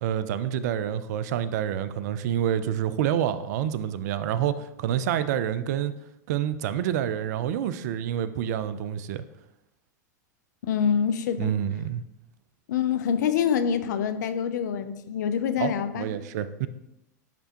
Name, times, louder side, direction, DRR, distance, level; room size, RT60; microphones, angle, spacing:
voice 1, 0.0-5.9 6.3-9.2 11.4-12.0 15.6-16.7, right 10 dB, 65° right, 14 dB, 0.4 m, -28 dB
voice 2, 10.6-11.5 12.7-16.1, left 7 dB, 75° left, 11 dB, 0.5 m, -26 dB
10.0 x 3.4 x 2.9 m, 0.89 s
hypercardioid pair, 100°, 10 cm